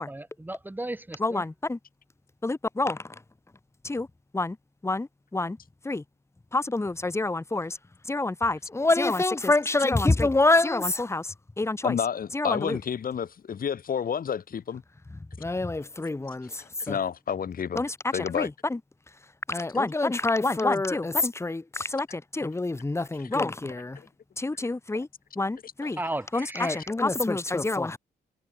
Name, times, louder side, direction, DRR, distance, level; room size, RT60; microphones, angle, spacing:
voice 1, 0.0-1.4 26.0-26.8, right 1 dB, 10° right, 0.9 m, -35 dB
voice 2, 1.2-1.8 2.4-3.1 3.8-4.1 4.3-4.6 4.8-5.6 5.8-6.0 6.5-7.8 8.0-12.0 12.3-12.8 15.4-17.0 17.7-18.8 19.5-24.0 24.4-25.1 25.4-26.0 26.3-28.0, left 2 dB, 15° left, 0.9 m, -27 dB
voice 3, 11.8-14.8 16.6-17.8 18.1-18.5 25.8-25.9, left 7 dB, 55° left, 1.3 m, -30 dB
cardioid pair, 70°, 17 cm